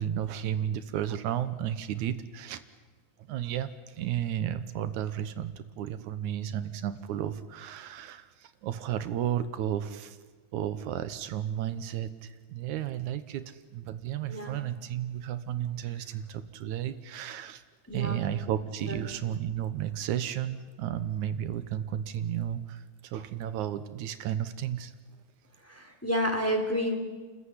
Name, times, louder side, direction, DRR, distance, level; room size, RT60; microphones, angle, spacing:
voice 1, 0.0-2.6 3.3-10.2 10.5-17.6 17.9-24.9, right 10 dB, 85° right, 12 dB, 2.4 m, -33 dB
voice 2, 17.9-18.3 18.9-19.0 25.6-27.0, equal, 5° left, 3 dB, 3.1 m, -30 dB
29.5 x 14.5 x 9.8 m, 1.4 s
omnidirectional pair, 3.4 m